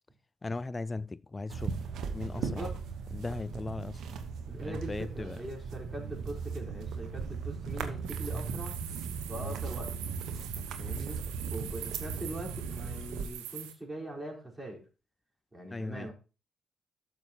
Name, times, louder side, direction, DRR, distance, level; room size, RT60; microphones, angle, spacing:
voice 1, 0.4-1.7 2.1-2.7 3.1-4.0 4.7-5.4 10.9-11.0 15.7-16.1, left 3 dB, 25° left, 0.3 m, -37 dB
sound 1, 1.5-13.3, right 5 dB, 70° right, 1.1 m, -38 dB
voice 2, 2.3-2.8 4.5-8.8 9.3-9.9 10.8-11.2 11.5-14.8 15.5-16.1, right 1 dB, 15° right, 4.4 m, -41 dB
sound 2, 8.1-13.7, right 11 dB, 90° right, 0.9 m, -44 dB
12.5 x 6.8 x 2.9 m
hypercardioid pair, 50°, 0 cm